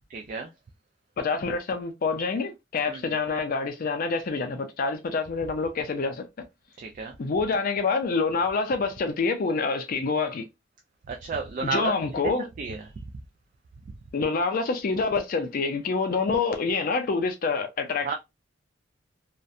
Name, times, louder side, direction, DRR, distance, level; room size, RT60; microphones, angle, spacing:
voice 1, 0.1-0.5 2.9-3.1 6.8-7.1 11.1-11.9 12.4-12.9 18.0-18.1, right 4 dB, 40° right, 0.3 m, -32 dB
voice 2, 1.2-6.2 7.2-10.4 11.6-12.5 14.1-18.1, left 4 dB, 45° left, 0.4 m, -27 dB
2.6 x 2.1 x 2.3 m
head